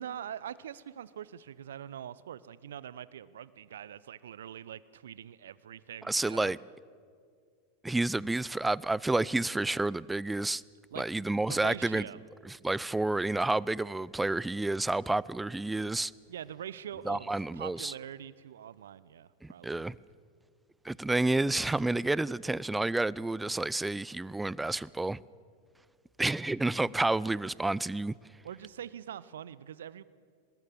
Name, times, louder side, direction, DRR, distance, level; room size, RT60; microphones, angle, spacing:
voice 1, 0.0-6.5 10.9-11.0 11.3-12.2 13.8-13.9 16.3-19.8 28.4-30.0, right 9 dB, 70° right, 0.7 m, -43 dB
voice 2, 6.0-6.6 7.8-10.6 11.0-12.0 12.4-16.1 17.1-17.9 19.4-20.0 20.8-25.2 26.2-28.1, right 2 dB, 10° right, 0.5 m, -30 dB
24.0 x 20.0 x 7.3 m
figure-of-eight pair, 90°, 0 cm